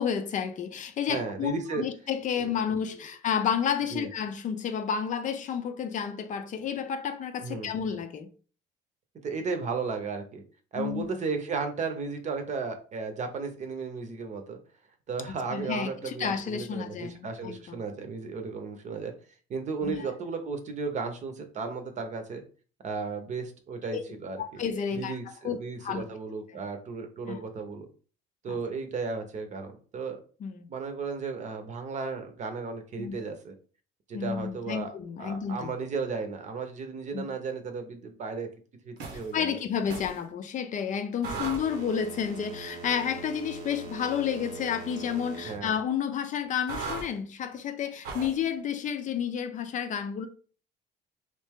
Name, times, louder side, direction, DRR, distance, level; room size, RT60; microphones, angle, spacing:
voice 1, 0.0-8.3 10.8-11.1 15.3-17.8 19.8-20.1 23.9-24.0 24.4-25.2 25.4-26.0 27.3-27.4 28.5-28.6 30.4-30.7 33.0-33.2 34.1-35.7 37.1-37.2 39.3-50.3, left 7 dB, 50° left, 0.5 m, -31 dB
voice 2, 1.1-1.9 2.4-2.8 3.9-4.1 7.4-7.7 9.2-10.4 10.7-14.6 15.1-19.1 19.5-22.4 22.8-24.6 24.9-27.9 28.4-30.2 30.7-33.5 34.1-34.9 35.2-38.5 38.8-39.6 41.3-41.4 45.5-45.7, right 4 dB, 45° right, 0.8 m, -34 dB
sound 1, 39.0-39.3 39.9-40.2 41.2-45.6 46.7-47.1 48.0-48.4, right 4 dB, 80° right, 1.0 m, -39 dB
3.2 x 2.6 x 3.5 m
cardioid pair, 110°, 17 cm